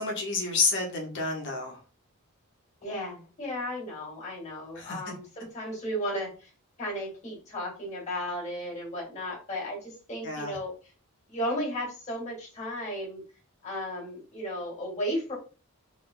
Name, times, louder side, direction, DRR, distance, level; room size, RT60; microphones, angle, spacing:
voice 1, 0.0-1.8 4.7-5.0 10.2-10.6, left 4 dB, 55° left, 0 dB, 1.0 m, -29 dB
voice 2, 2.8-6.5 6.8-10.7 11.3-13.2 13.6-15.3, equal, 30° left, -3 dB, 2.0 m, -34 dB
3.7 x 2.2 x 3.8 m, 0.35 s
head